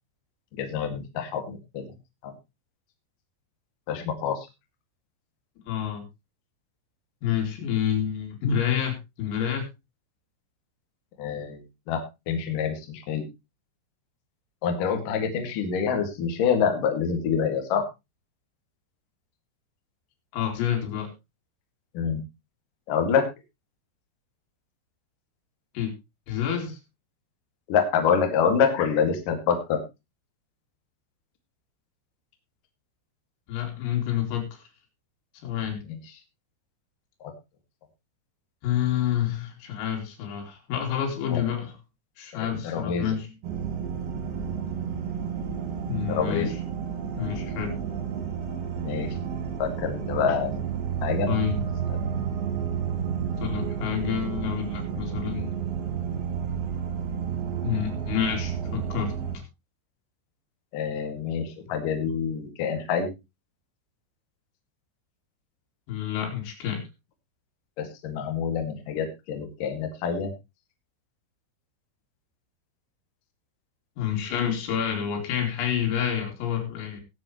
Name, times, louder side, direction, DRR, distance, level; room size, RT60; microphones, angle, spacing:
voice 1, 0.6-1.9 2.2-2.3 3.9-4.4 11.2-11.6 11.9-12.0 12.3-13.2 14.6-17.9 21.9-22.2 22.9-23.2 27.7-29.8 35.9-36.0 37.2-37.3 41.3-41.4 42.3-43.1 46.1-46.5 47.2-47.3 48.8-49.1 49.6-50.7 51.0-51.3 51.9-52.0 60.7-63.1 67.8-70.3, left 7 dB, 50° left, 4 dB, 3.0 m, -26 dB
voice 2, 5.7-6.1 7.2-9.7 20.3-21.1 25.8-25.9 26.3-26.8 33.5-34.6 35.4-35.8 38.6-41.8 42.2-43.3 45.9-46.5 47.2-47.8 51.3-51.7 53.4-55.6 57.6-59.1 65.9-66.8 74.0-77.0, left 9 dB, 85° left, 2 dB, 5.6 m, -28 dB
sound 1, 43.4-59.4, right 7 dB, 85° right, 4.9 m, -31 dB
20.5 x 7.7 x 3.1 m, 0.24 s
omnidirectional pair, 5.9 m